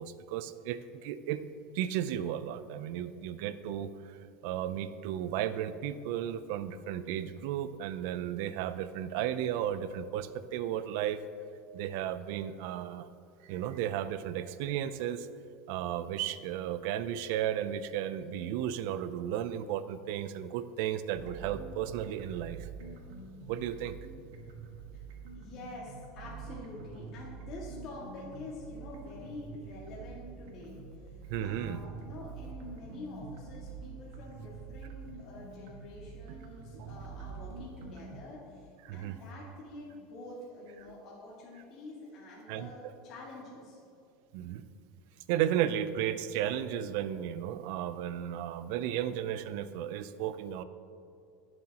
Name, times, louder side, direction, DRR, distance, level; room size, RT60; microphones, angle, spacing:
voice 1, 0.0-1.4 1.7-4.2 4.4-11.2 11.7-13.1 13.4-15.3 15.7-22.7 23.5-24.0 31.3-31.8 38.8-39.2 42.5-42.7 44.3-44.6 45.3-50.6, right 10 dB, 65° right, 13 dB, 0.5 m, -34 dB
sound 1, 21.1-38.2, right 5 dB, 85° right, 1.8 m, -46 dB
voice 2, 25.3-30.8 31.4-43.8, left 2 dB, 40° left, -6 dB, 2.0 m, -47 dB
19.0 x 7.7 x 3.0 m, 2.5 s
supercardioid pair, 155°, 0 cm